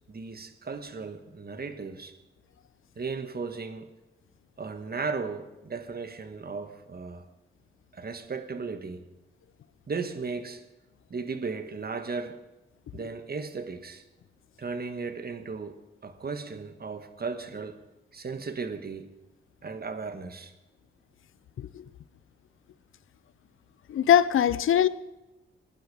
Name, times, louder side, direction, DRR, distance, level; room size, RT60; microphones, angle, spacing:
voice 1, 0.1-2.2 2.9-3.9 4.6-7.2 7.9-9.1 9.9-10.6 11.1-12.4 12.9-14.0 14.6-17.8 18.1-19.1 19.6-20.5, right 4 dB, 45° right, 1.6 m, -36 dB
voice 2, 23.9-24.9, left 10 dB, 75° left, 0.7 m, -22 dB
20.5 x 11.5 x 5.0 m
supercardioid pair, 45°, 21 cm